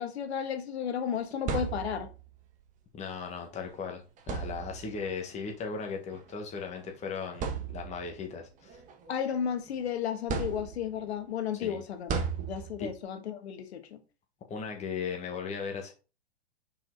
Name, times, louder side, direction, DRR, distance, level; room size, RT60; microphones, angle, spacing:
voice 1, 0.0-2.1 9.1-12.1 12.5-14.0, left 8 dB, 75° left, 1.5 m, -33 dB
sound 1, 1.1-2.3 3.5-3.7 4.2-5.0 6.1-6.3 6.8-6.9 7.3-8.2 8.7-9.7 10.3-11.1 12.1-13.0, right 6 dB, 25° right, 1.2 m, -35 dB
voice 2, 2.9-8.8 11.5-11.8 12.8-12.9 14.5-15.9, left 5 dB, 20° left, 1.6 m, -37 dB
5.6 x 4.9 x 3.9 m
hypercardioid pair, 135°, 33 cm